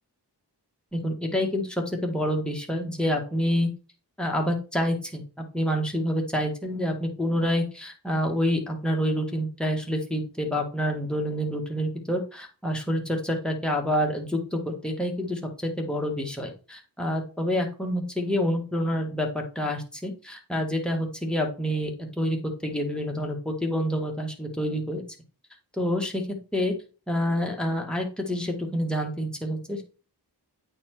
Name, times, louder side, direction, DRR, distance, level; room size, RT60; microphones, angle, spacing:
voice 1, 0.9-3.7 4.2-5.2 5.5-22.4 22.6-25.0 25.8-26.2 26.5-26.7 27.1-29.8, equal, ahead, 0 dB, 1.8 m, -27 dB
8.7 x 4.4 x 4.5 m, 0.35 s
wide cardioid pair, 55°, 41 cm